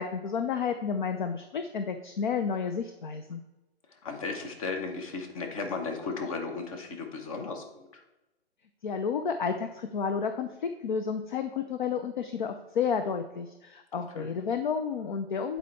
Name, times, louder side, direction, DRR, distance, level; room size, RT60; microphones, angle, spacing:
voice 1, 0.0-3.4 8.8-15.6, left 6 dB, 50° left, 7 dB, 0.5 m, -31 dB
voice 2, 3.9-8.0 14.1-14.3, left 4 dB, 30° left, 4 dB, 1.1 m, -35 dB
8.1 x 4.4 x 4.1 m, 0.99 s
hypercardioid pair, 145°, 33 cm